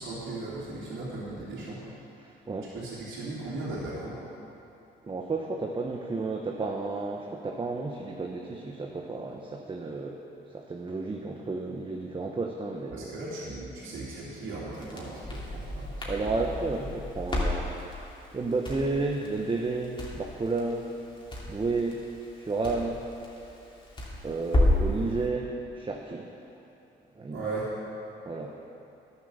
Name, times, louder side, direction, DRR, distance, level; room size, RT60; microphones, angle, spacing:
voice 1, 0.0-1.8 2.7-4.2 12.9-16.3 27.3-27.7, right 2 dB, 75° right, -12 dB, 3.2 m, -37 dB
voice 2, 2.2-2.7 5.0-10.2 10.5-13.1 16.0-17.9 18.3-20.9 21.5-22.1 22.4-23.0 24.2-26.3 27.1-27.4 28.3-28.6, right 3 dB, 25° right, 1 dB, 1.0 m, -32 dB
Crackle, 14.7-25.0, left 1 dB, 25° left, 2.8 m, -32 dB
12.0 x 7.5 x 6.7 m, 2.9 s
cardioid pair, 90°, 20 cm